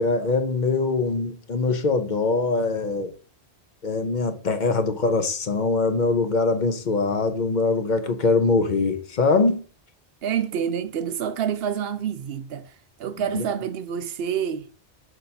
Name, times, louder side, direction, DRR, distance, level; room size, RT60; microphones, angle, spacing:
voice 1, 0.0-3.1 3.8-9.6 13.3-13.4, left 3 dB, 50° left, 0.8 m, -23 dB
voice 2, 10.2-12.7 13.0-14.7, right 8 dB, 70° right, 0.8 m, -27 dB
6.3 x 2.8 x 5.2 m
omnidirectional pair, 1.1 m